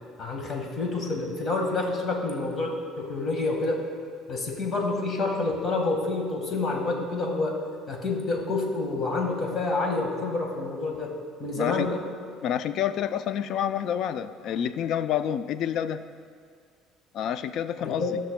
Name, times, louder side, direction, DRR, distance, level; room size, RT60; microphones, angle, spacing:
voice 1, 0.2-3.9 4.3-7.6 7.9-11.1 11.4-12.0 17.8-18.2, left 3 dB, 35° left, 1 dB, 1.5 m, -28 dB
voice 2, 11.5-11.9 12.4-16.0 17.1-18.2, left 9 dB, 60° left, 11 dB, 0.4 m, -28 dB
17.0 x 6.1 x 2.2 m, 2.1 s
cardioid pair, 110°, 0 cm